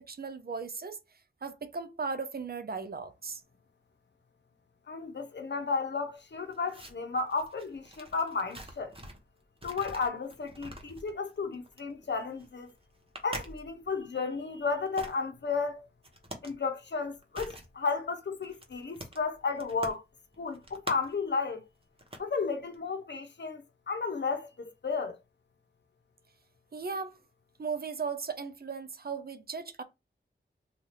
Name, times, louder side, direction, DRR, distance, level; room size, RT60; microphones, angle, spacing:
voice 1, 0.1-1.0 1.4-3.4 26.7-27.2 27.6-29.8, right 5 dB, 50° right, 0.5 m, -37 dB
voice 2, 4.9-9.0 9.6-12.7 13.2-15.9 16.4-20.0 20.4-21.7 22.2-23.6 23.9-25.2, left 4 dB, 60° left, 0.8 m, -33 dB
sound 1, 6.2-9.3 9.6-14.0 14.7-15.1 16.0-16.6 16.8-17.7 18.0-18.1 18.4-20.0 20.3-21.3 21.8-22.3 22.5-22.7, right 1 dB, 30° right, 1.0 m, -45 dB
2.7 x 2.4 x 3.3 m
cardioid pair, 45°, 20 cm